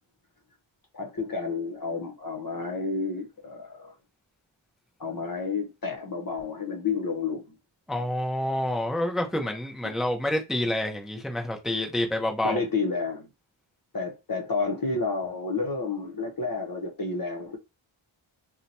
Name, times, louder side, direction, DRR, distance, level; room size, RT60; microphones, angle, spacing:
voice 1, 0.9-3.9 5.0-7.5 12.4-13.3 13.9-17.6, left 4 dB, 45° left, 0.9 m, -30 dB
voice 2, 7.9-12.6, left 1 dB, ahead, 0.7 m, -28 dB
2.8 x 2.2 x 4.0 m
wide cardioid pair, 85°, 49 cm